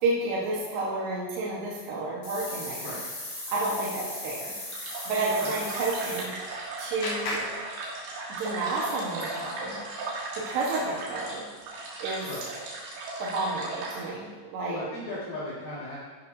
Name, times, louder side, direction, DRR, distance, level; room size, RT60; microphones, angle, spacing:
voice 1, 0.0-2.9 3.5-4.5 5.1-6.3 6.8-7.4 8.4-9.8 10.4-11.5 12.0-12.3 13.2-14.8, right 2 dB, 70° right, -6 dB, 3.3 m, -30 dB
sound 1, 2.2-6.3, left 1 dB, 20° left, 1.9 m, -38 dB
sound 2, 4.7-14.0, right 2 dB, 90° right, 4.8 m, -37 dB
Clapping, 5.9-8.5, left 2 dB, 75° left, 5.4 m, -38 dB
voice 2, 14.7-16.0, left 1 dB, 55° left, -9 dB, 3.2 m, -36 dB
15.5 x 11.5 x 2.7 m, 1.4 s
omnidirectional pair, 5.2 m